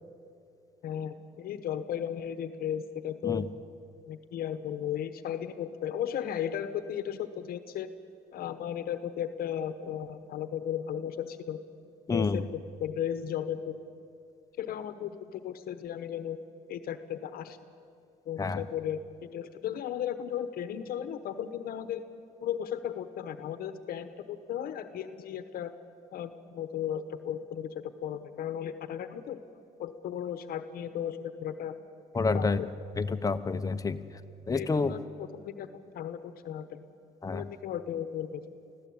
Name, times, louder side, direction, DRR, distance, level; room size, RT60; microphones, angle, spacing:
voice 1, 0.8-3.4 4.1-7.9 8.3-11.6 12.1-13.8 14.6-16.4 16.7-17.6 18.3-19.0 19.3-22.0 22.4-25.7 26.1-29.4 29.8-31.7 32.3-32.8 34.5-36.9 37.3-38.4, left 9 dB, 60° left, 10 dB, 1.1 m, -35 dB
voice 2, 12.1-12.4 18.4-18.6 32.1-32.6 33.0-34.0 34.5-34.9 37.2-37.4, left 4 dB, 20° left, 9 dB, 0.9 m, -28 dB
24.5 x 15.5 x 8.6 m, 2.5 s
cardioid pair, 110°, 17 cm